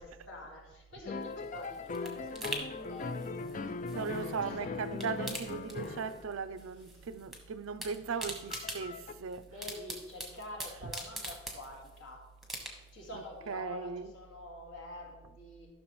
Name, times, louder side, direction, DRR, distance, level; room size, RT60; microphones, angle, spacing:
voice 1, 0.0-4.1 4.4-4.7 6.9-7.1 8.9-9.0 9.4-12.2 12.7-15.7, left 2 dB, 60° left, 2.1 m, -47 dB
sound 1, 1.1-6.4 8.2-9.1, left 3 dB, 35° left, 0.3 m, -39 dB
sound 2, 1.2-4.5 4.8-6.3 6.6-7.4 7.6-12.0 12.4-13.1 13.5-13.6, right 1 dB, ahead, 1.1 m, -43 dB
voice 2, 3.9-9.5 10.8-10.9 13.1-14.1, right 5 dB, 75° right, 0.5 m, -38 dB
13.5 x 6.1 x 3.1 m
head